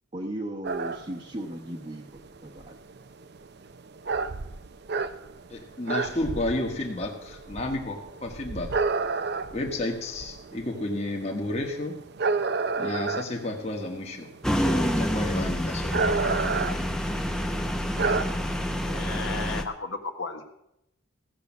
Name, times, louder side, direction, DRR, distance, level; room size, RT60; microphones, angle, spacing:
voice 1, 0.1-2.8, right 1 dB, 30° right, -2 dB, 1.0 m, -36 dB
sound 1, 0.6-19.4, right 4 dB, 50° right, 0.6 m, -32 dB
voice 2, 5.5-8.7 9.5-12.0 12.8-16.1, left 2 dB, 30° left, 0 dB, 1.4 m, -32 dB
sound 2, 14.4-19.6, equal, 5° left, 0.7 m, -28 dB
voice 3, 18.8-20.4, left 4 dB, 70° left, 4 dB, 1.5 m, -34 dB
16.0 x 6.7 x 7.3 m, 0.82 s
head